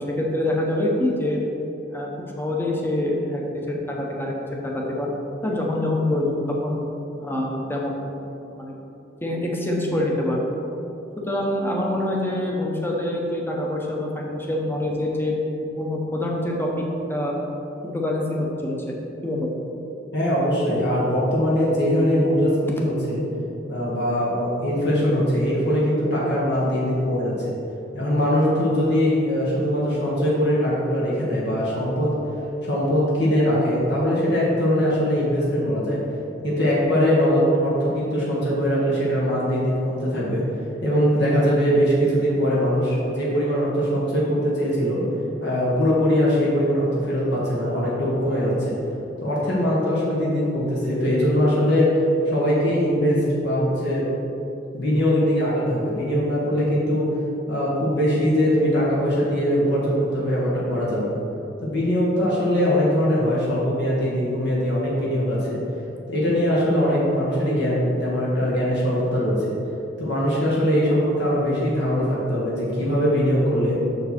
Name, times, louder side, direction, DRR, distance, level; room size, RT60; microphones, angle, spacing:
voice 1, 0.0-1.4 1.9-2.1 2.4-3.4 3.7-4.4 4.6-5.1 5.4-6.8 7.2-8.2 8.5-8.7 9.2-10.5 11.3-15.3 15.8-16.7 17.1-17.3 17.8-19.0 19.2-19.5, left 1 dB, 10° left, -1 dB, 1.0 m, -25 dB
voice 2, 20.1-23.2 23.7-27.5 27.9-32.2 32.6-36.0 36.4-40.4 40.8-45.0 45.4-48.8 49.2-51.9 52.3-54.1 54.7-57.1 57.5-61.2 61.6-65.6 66.1-69.5 70.0-73.8, equal, 60° left, -6 dB, 1.6 m, -21 dB
6.7 x 6.2 x 4.4 m, 3.0 s
head